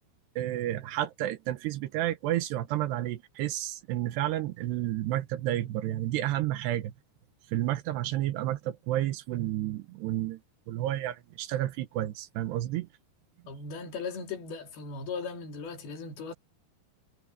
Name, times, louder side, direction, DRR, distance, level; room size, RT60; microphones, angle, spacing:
voice 1, 0.4-6.9 7.5-10.4 10.7-12.9, right 14 dB, 85° right, 3.2 m, -31 dB
voice 2, 13.5-16.3, left 4 dB, 65° left, 4.7 m, -38 dB
omnidirectional pair, 4.9 m